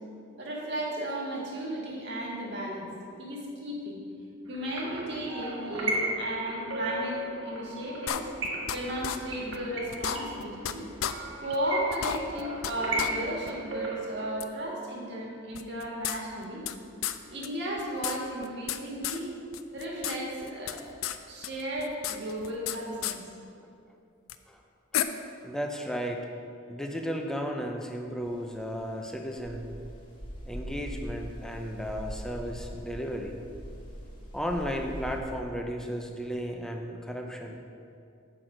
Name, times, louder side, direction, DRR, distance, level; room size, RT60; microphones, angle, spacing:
voice 1, 0.4-2.9 3.2-4.0 4.5-8.3 8.7-10.9 11.4-16.6 17.3-19.3 19.7-20.8 21.3-23.2, right 1 dB, 55° right, -2 dB, 1.6 m, -34 dB
sound 1, 4.5-14.3, right 2 dB, 75° right, 1.1 m, -36 dB
sound 2, 8.1-8.8 9.0-9.2 9.5-9.6 9.9-10.7 11.0-11.1 11.5-11.6 11.9-12.7 13.0-13.1 13.5-13.6 14.4-14.5 15.5-16.7 17.0-17.2 17.4-17.5 17.8-18.8 19.0-19.2 19.5-20.2 20.4-21.2 21.4-22.8 23.0-23.2 24.3-24.4 24.9-25.0, left 11 dB, 85° left, 0.4 m, -32 dB
voice 2, 25.4-26.3 26.7-29.8 30.5-33.4 34.3-37.6, equal, 5° left, 2 dB, 0.5 m, -34 dB
sound 3, 28.2-35.2, equal, 25° left, 1.0 m, -42 dB
7.8 x 6.1 x 5.0 m, 2.5 s
head